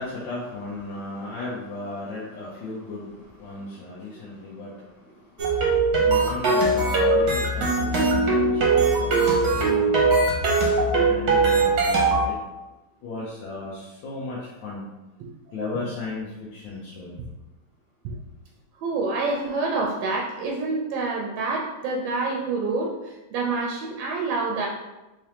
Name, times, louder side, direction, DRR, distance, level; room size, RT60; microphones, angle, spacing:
voice 1, 0.0-10.2 10.9-12.4 13.0-14.8 15.5-17.2, left 3 dB, 90° left, -6 dB, 1.5 m, -36 dB
sound 1, 5.4-12.3, right 3 dB, 60° right, 1.3 m, -21 dB
voice 2, 18.8-24.7, right 3 dB, 85° right, -1 dB, 1.3 m, -27 dB
3.7 x 3.3 x 2.8 m, 1.0 s
omnidirectional pair, 2.0 m